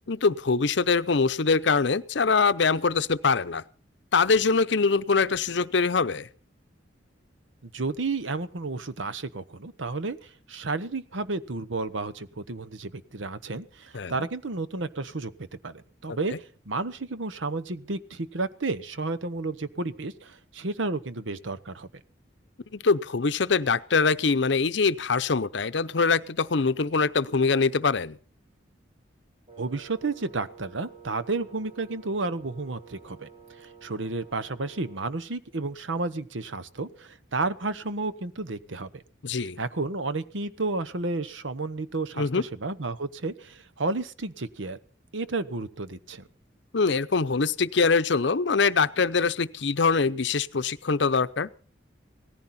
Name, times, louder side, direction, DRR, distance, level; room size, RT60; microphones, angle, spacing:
voice 1, 0.1-3.6 4.1-6.3 13.9-14.1 16.1-16.4 22.7-28.2 39.2-39.6 42.2-42.4 46.7-51.5, left 4 dB, 70° left, 14 dB, 0.7 m, -23 dB
voice 2, 7.6-15.3 15.6-16.3 16.7-21.9 29.6-33.3 33.6-39.0 39.6-44.8 45.1-46.3, right 3 dB, 85° right, 14 dB, 1.0 m, -32 dB
Wind instrument woodwind instrument, 29.5-35.3, right 6 dB, 35° right, 1.4 m, -50 dB
18.0 x 14.5 x 4.3 m, 0.41 s
head